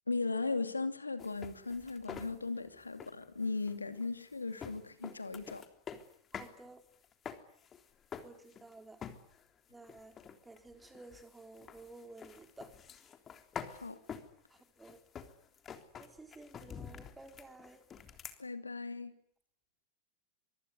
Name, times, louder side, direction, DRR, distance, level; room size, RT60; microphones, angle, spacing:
voice 1, 0.1-5.6 13.7-14.0 18.4-19.1, left 3 dB, 80° left, 9 dB, 2.7 m, -37 dB
sound 1, 1.2-6.6 6.8-8.7 9.0-9.5 9.8-18.4, left 7 dB, 25° left, 3.4 m, -48 dB
voice 2, 6.3-6.8 8.2-9.0 9.7-10.1 10.4-12.7 14.8-15.0 15.9-17.8, right 2 dB, 10° right, 6 dB, 4.2 m, -53 dB
24.5 x 24.5 x 9.7 m, 0.67 s
figure-of-eight pair, 90°, 0 cm